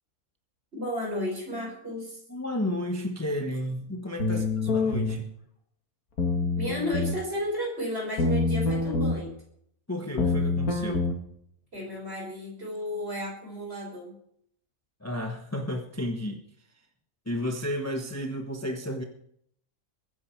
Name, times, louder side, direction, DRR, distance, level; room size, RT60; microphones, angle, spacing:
voice 1, 0.7-2.2 4.3-4.4 6.5-9.3 11.7-14.1, left 1 dB, 45° right, -1 dB, 6.2 m, -33 dB
voice 2, 2.3-5.3 9.9-11.1 15.0-16.4 17.3-19.0, left 1 dB, 10° left, 3 dB, 1.1 m, -32 dB
sound 1, 4.2-5.2 6.2-7.2 8.2-9.2 10.2-11.2, left 3 dB, 80° left, 2.5 m, -26 dB
22.0 x 10.0 x 4.6 m, 0.70 s
omnidirectional pair, 1.5 m